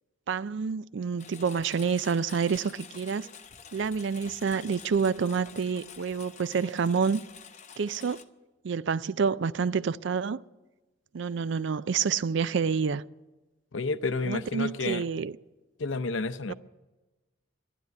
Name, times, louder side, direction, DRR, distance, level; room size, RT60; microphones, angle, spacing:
voice 1, 0.3-3.3 3.7-7.2 7.8-8.2 8.6-10.4 11.1-13.0 14.2-15.3 16.5-16.6, right 6 dB, 65° right, 0.4 m, -28 dB
Engine, 1.2-8.2, left 7 dB, 35° left, 0.8 m, -49 dB
voice 2, 13.7-15.0 15.8-16.5, left 3 dB, 75° left, 0.7 m, -30 dB
12.0 x 11.5 x 9.3 m
head